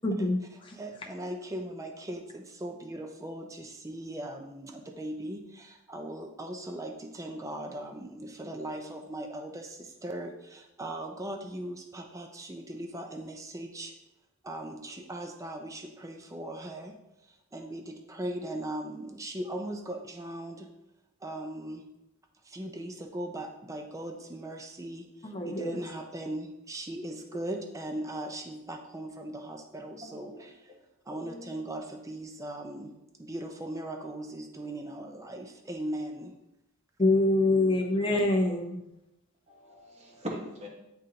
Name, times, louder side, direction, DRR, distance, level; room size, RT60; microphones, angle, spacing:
voice 1, 0.0-0.7 25.2-25.8 37.0-38.8, left 2 dB, 25° left, 1 dB, 0.8 m, -26 dB
voice 2, 0.7-13.9 14.4-17.0 17.2-20.7 21.2-21.9 22.4-30.7 31.1-32.9 33.2-36.3, right 1 dB, 15° right, 4 dB, 0.4 m, -39 dB
voice 3, 30.1-30.4 31.2-31.4 39.5-40.7, equal, 30° right, -1 dB, 1.1 m, -40 dB
9.8 x 3.8 x 2.8 m, 0.92 s
head